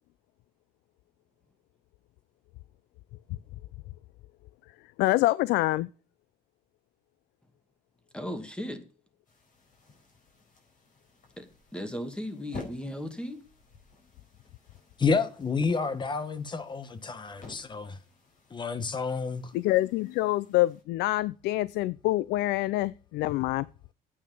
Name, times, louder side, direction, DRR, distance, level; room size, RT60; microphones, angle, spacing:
voice 1, 5.0-5.9 19.5-23.7, left 17 dB, 80° left, 0.4 m, -26 dB
voice 2, 8.1-8.8 11.4-13.4, equal, 5° left, 2.2 m, -36 dB
sound 1, 9.2-20.8, left 3 dB, 50° left, 4.3 m, -52 dB
voice 3, 15.0-18.0 18.5-19.5, left 4 dB, 25° left, 1.4 m, -29 dB
9.5 x 8.8 x 5.4 m
cardioid pair, 110°, 17 cm